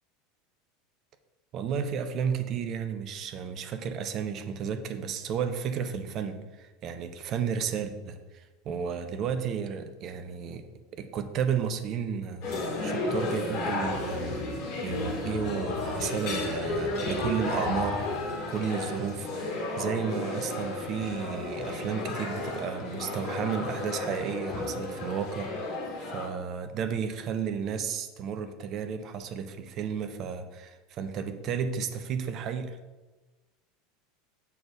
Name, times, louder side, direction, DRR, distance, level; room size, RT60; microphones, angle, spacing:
voice 1, 1.5-10.6 10.9-12.5 12.8-14.4 14.8-18.0 18.5-19.5 19.8-32.8, right 7 dB, 40° right, 8 dB, 0.6 m, -33 dB
sound 1, 12.4-26.3, left 2 dB, 45° left, 2.2 m, -33 dB
6.7 x 4.2 x 4.8 m, 1.2 s
figure-of-eight pair, 75°, 0 cm